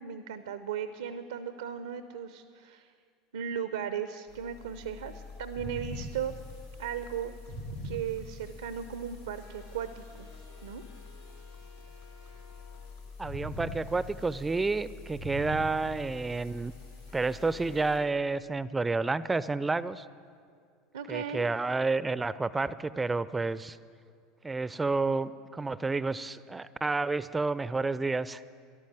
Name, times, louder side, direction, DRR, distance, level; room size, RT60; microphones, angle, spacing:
voice 1, 0.0-2.9 3.3-6.3 6.8-7.3 7.8-10.3 10.6-10.8 20.9-21.5, right 8 dB, 70° right, 12 dB, 0.5 m, -36 dB
sound 1, 4.3-18.0, left 1 dB, 85° left, 2.9 m, -44 dB
voice 2, 13.2-16.7 17.1-20.1 21.1-23.8 24.4-28.4, right 3 dB, 15° right, 17 dB, 0.4 m, -30 dB
13.0 x 11.5 x 7.4 m, 2.2 s
figure-of-eight pair, 75°, 0 cm